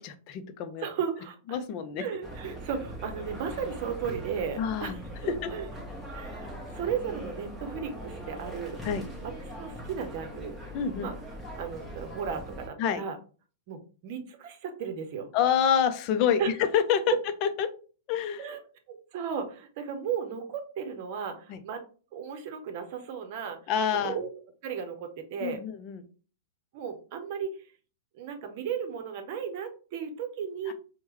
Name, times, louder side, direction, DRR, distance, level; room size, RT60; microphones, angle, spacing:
voice 1, 0.0-0.8 1.5-2.0 4.6-5.0 5.3-5.5 8.8-9.0 10.7-11.1 12.8-13.0 15.3-17.1 17.4-17.7 18.1-18.5 21.5-21.6 23.7-24.2 25.4-26.0 30.7-30.8, left 8 dB, 40° left, 9 dB, 0.5 m, -27 dB
voice 2, 0.8-1.6 2.0-5.7 6.1-8.8 9.2-9.3 9.6-10.6 11.0-11.1 11.6-13.2 13.7-15.3 16.4-16.5 18.4-18.6 18.9-21.8 22.1-23.6 24.0-24.3 24.6-25.6 26.7-27.5 28.1-30.7, right 7 dB, 50° right, 7 dB, 0.8 m, -35 dB
sound 1, 2.2-12.7, equal, ahead, 1.1 m, -41 dB
4.5 x 2.2 x 3.1 m, 0.38 s
figure-of-eight pair, 105°, 0 cm